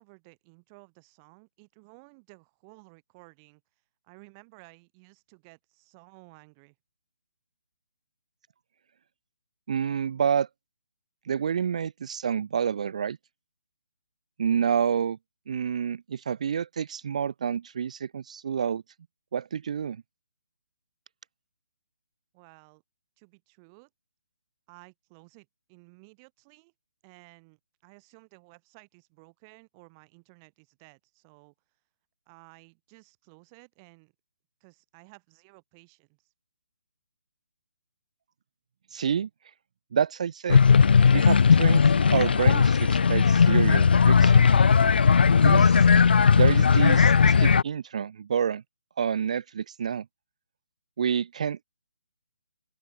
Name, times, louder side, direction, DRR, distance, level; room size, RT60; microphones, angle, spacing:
voice 1, 0.0-3.6 4.0-6.7 22.3-22.8 23.2-23.9 24.7-26.7 27.0-31.5 32.3-34.1 34.6-36.3, right 31 dB, 20° right, 5.0 m, -55 dB
voice 2, 9.7-10.5 11.3-13.2 14.4-15.2 15.5-18.8 19.3-20.0 38.9-39.3 39.9-40.6 41.1-41.8 42.1-44.4 45.3-45.8 46.3-48.6 49.0-50.1 51.0-51.6, right 7 dB, 45° right, 0.4 m, -28 dB
sound 1, 40.5-47.6, left 6 dB, 75° left, 0.4 m, -18 dB
open air
hypercardioid pair, 170°, 5 cm